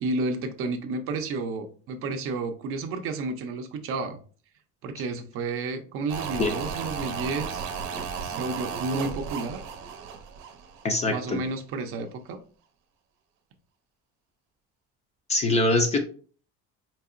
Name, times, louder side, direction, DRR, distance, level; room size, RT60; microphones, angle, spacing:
voice 1, 0.0-4.2 4.8-7.7 8.2-9.6 11.1-12.4, right 3 dB, 45° right, 6 dB, 0.5 m, -31 dB
sound 1, 6.1-11.3 11.5-11.6, right 6 dB, 80° right, 0.7 m, -35 dB
voice 2, 10.8-11.4 15.3-16.0, left 2 dB, 25° left, 5 dB, 0.4 m, -23 dB
4.6 x 2.8 x 2.4 m, 0.41 s
cardioid pair, 170°, 30 cm